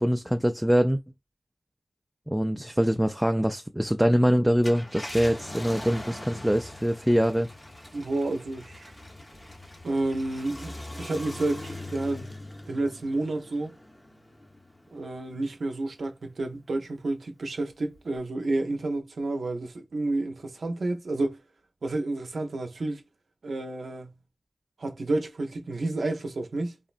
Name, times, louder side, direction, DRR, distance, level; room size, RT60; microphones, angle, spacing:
voice 1, 0.0-1.0 2.3-7.5, equal, 5° right, 0.3 m, -24 dB
Car, 4.5-15.3 15.8-15.9 17.9-18.2, left 1 dB, 30° left, 0.7 m, -42 dB
voice 2, 7.9-9.0 9.8-12.4 12.7-13.8 14.9-21.4 21.8-23.0 23.4-24.2 24.8-26.8, right 2 dB, 80° right, 0.6 m, -30 dB
3.7 x 2.0 x 2.4 m
cardioid pair, 50°, 0 cm